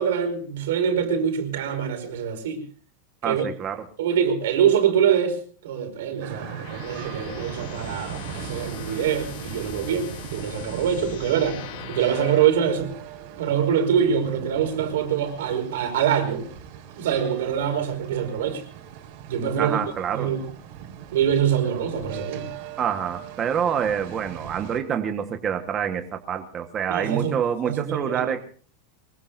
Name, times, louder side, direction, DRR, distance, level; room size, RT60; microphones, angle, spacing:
voice 1, 0.0-2.6 3.2-3.4 4.0-12.9 13.4-16.4 16.9-18.6 19.3-19.8 20.1-20.4 21.1-22.5 26.9-27.4 27.6-28.2, right 8 dB, 80° right, 5.1 m, -24 dB
voice 2, 3.2-3.8 19.6-20.3 22.8-28.4, right 8 dB, 20° right, 1.3 m, -27 dB
sound 1, 6.2-24.8, right 9 dB, 50° right, 4.0 m, -39 dB
sound 2, 6.3-12.7, left 10 dB, 60° left, 3.0 m, -41 dB
24.0 x 22.0 x 2.6 m
supercardioid pair, 170°, 0 cm